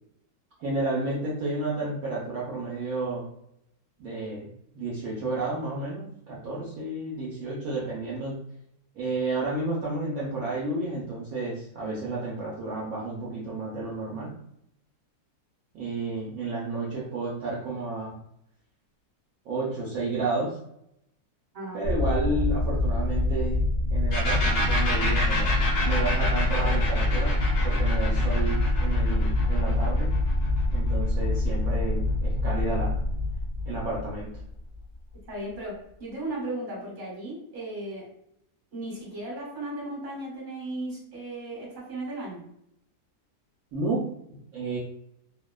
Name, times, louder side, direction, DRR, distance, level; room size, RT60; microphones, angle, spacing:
voice 1, 0.6-3.3 4.0-4.5 4.7-8.4 8.9-14.4 15.7-18.2 19.5-20.6 21.7-23.6 23.9-27.4 27.6-30.1 30.7-33.0 33.6-34.3 43.7-44.1 44.5-44.8, right 2 dB, 65° right, -5 dB, 1.0 m, -31 dB
voice 2, 21.5-21.8 35.1-38.1 38.7-42.4, right 1 dB, 35° right, -6 dB, 1.1 m, -36 dB
sound 1, 21.8-34.8, left 1 dB, 85° right, 0.4 m, -25 dB
sound 2, 24.1-31.6, left 1 dB, 65° left, 0.6 m, -30 dB
2.7 x 2.1 x 2.2 m, 0.75 s
omnidirectional pair, 1.7 m